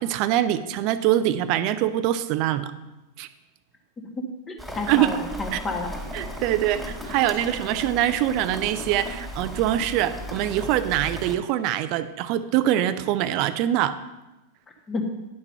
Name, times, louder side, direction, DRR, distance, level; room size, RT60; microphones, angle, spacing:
voice 1, 0.0-2.7 3.2-3.3 4.9-5.2 5.5-5.6 6.1-14.0, right 12 dB, 45° right, 13 dB, 0.5 m, -24 dB
voice 2, 4.2-6.0 6.7-6.8 14.9-15.0, left 2 dB, 20° left, 2 dB, 1.6 m, -31 dB
Rain, 4.6-11.4, equal, ahead, 2.5 m, -36 dB
10.5 x 5.9 x 5.5 m, 1.0 s
figure-of-eight pair, 90°, 0 cm